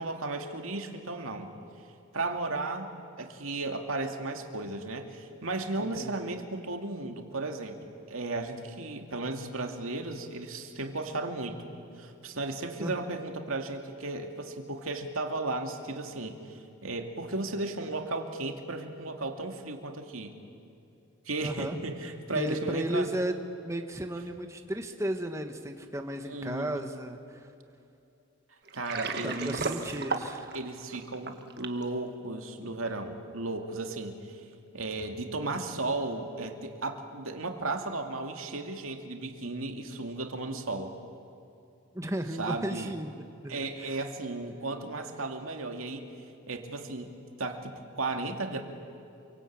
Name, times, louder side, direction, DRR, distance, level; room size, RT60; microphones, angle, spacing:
voice 1, 0.0-1.5 2.1-2.9 3.2-7.8 8.1-11.7 12.0-16.5 16.8-20.4 21.3-23.1 26.3-26.8 28.7-29.6 30.5-34.4 34.7-40.9 42.4-42.9 43.5-46.0 46.5-47.1 47.4-48.6, right 2 dB, 90° right, 4 dB, 2.5 m, -35 dB
voice 2, 5.8-6.3 12.8-13.0 21.4-21.8 22.3-23.4 23.6-27.5 29.2-30.5 41.9-44.1, right 1 dB, 15° right, 5 dB, 1.3 m, -34 dB
Water, 28.7-31.8, right 4 dB, 50° right, 1.6 m, -34 dB
27.5 x 24.0 x 8.7 m, 2.7 s
head